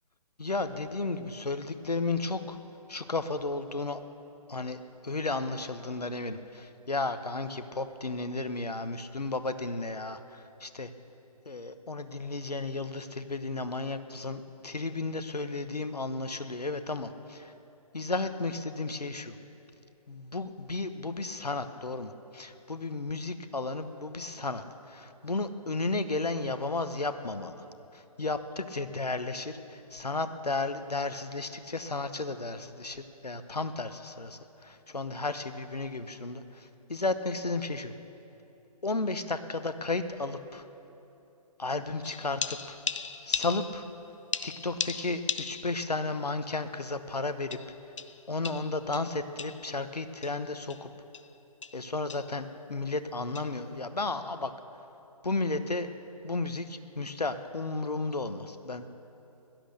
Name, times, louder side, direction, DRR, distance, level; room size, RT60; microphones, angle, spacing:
voice 1, 0.4-2.6 2.9-4.0 4.5-10.9 11.5-17.5 17.9-19.3 20.1-27.5 27.9-37.9 38.8-40.7 41.6-42.8 43.3-43.8 44.4-47.6 48.3-50.9 51.7-54.5 55.2-55.9 56.2-58.8, left 3 dB, 85° left, 10 dB, 1.0 m, -33 dB
sound 1, 42.0-44.0 44.3-45.9 46.2-46.3 47.5-49.7 50.2-50.4 50.7-50.8 51.1-51.4 51.6-51.8 52.1-52.4 53.3-53.5, left 6 dB, 50° left, 0.6 m, -37 dB
16.5 x 12.0 x 6.7 m, 3.0 s
figure-of-eight pair, 140°, 20 cm